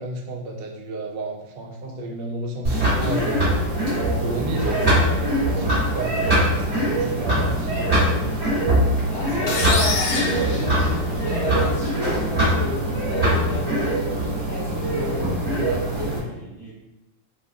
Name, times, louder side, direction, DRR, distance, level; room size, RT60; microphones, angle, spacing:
voice 1, 0.0-3.5 3.9-8.4 9.4-9.5 10.3-10.8, right 1 dB, 80° right, 0 dB, 1.3 m, -32 dB
sound 1, 2.6-16.2, right 1 dB, 40° right, 1.8 m, -22 dB
voice 2, 9.1-16.7, equal, 45° left, -7 dB, 0.9 m, -32 dB
sound 2, 9.5-11.4, left 3 dB, 65° left, 1.1 m, -26 dB
3.4 x 2.4 x 3.5 m, 0.98 s
omnidirectional pair, 2.0 m